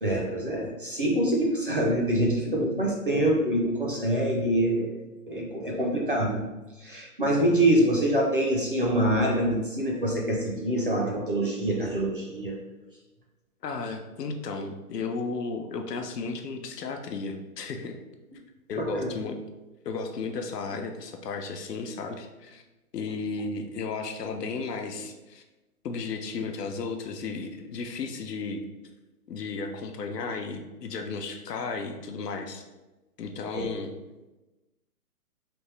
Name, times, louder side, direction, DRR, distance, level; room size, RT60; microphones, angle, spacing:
voice 1, 0.0-5.0 5.3-6.4 6.8-12.6 18.8-19.1 33.5-33.7, right 1 dB, 35° right, -1 dB, 0.5 m, -25 dB
voice 2, 13.6-18.0 18.7-19.4 19.8-22.6 22.9-25.4 25.8-28.6 29.3-32.6 33.2-33.9, left 4 dB, 85° left, 5 dB, 0.7 m, -34 dB
3.4 x 2.9 x 3.2 m, 1.1 s
hypercardioid pair, 170°, 47 cm